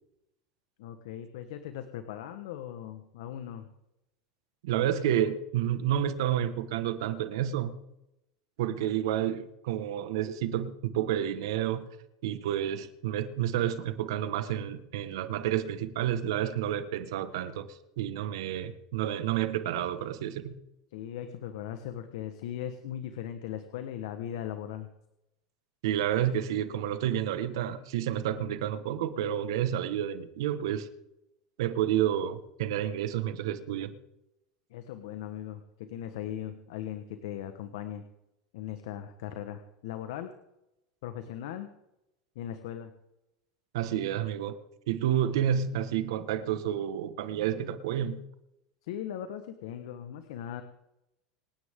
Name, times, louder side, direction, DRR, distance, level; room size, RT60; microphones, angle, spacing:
voice 1, 0.8-3.7 20.9-24.9 34.7-38.1 38.5-40.3 41.0-41.7 42.3-42.9 48.9-50.6, left 10 dB, 80° left, 8 dB, 1.3 m, -39 dB
voice 2, 4.6-7.8 8.6-11.8 12.2-17.7 18.0-20.5 25.8-30.9 31.6-33.9 43.7-44.6 44.9-48.2, right 10 dB, 80° right, 11 dB, 1.5 m, -30 dB
26.0 x 9.9 x 3.8 m, 0.88 s
supercardioid pair, 110°, 2 cm